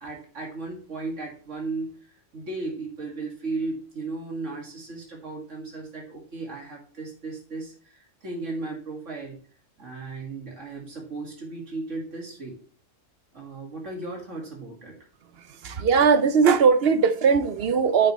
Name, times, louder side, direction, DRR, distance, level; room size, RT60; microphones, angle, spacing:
voice 1, 0.0-2.0 2.3-9.4 9.8-12.6 13.3-14.9, right 3 dB, 80° right, 2.5 m, -35 dB
voice 2, 15.5-18.1, right 5 dB, 60° right, 0.8 m, -19 dB
8.9 x 7.8 x 3.1 m
omnidirectional pair, 1.3 m